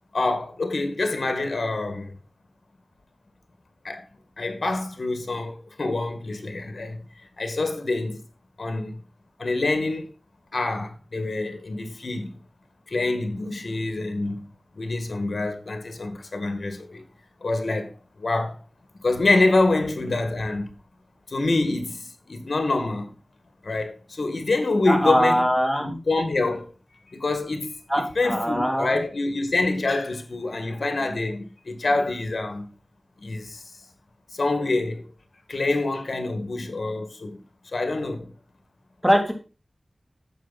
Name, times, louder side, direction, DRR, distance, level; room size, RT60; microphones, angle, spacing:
voice 1, 0.1-2.1 3.8-4.0 4.4-7.0 7.4-8.2 8.6-9.0 9.4-10.1 10.5-12.3 12.9-14.5 14.8-17.0 17.4-17.9 18.2-18.6 19.0-20.7 21.3-23.1 23.6-25.4 25.8-26.7 27.1-32.7 33.2-33.7 34.3-35.1 35.5-37.4 37.7-38.3, left 2 dB, 75° left, 2.0 m, -26 dB
voice 2, 24.9-26.0 27.9-29.0 39.0-39.3, equal, 5° right, 3.1 m, -22 dB
9.3 x 7.3 x 4.2 m
wide cardioid pair, 60°, 0 cm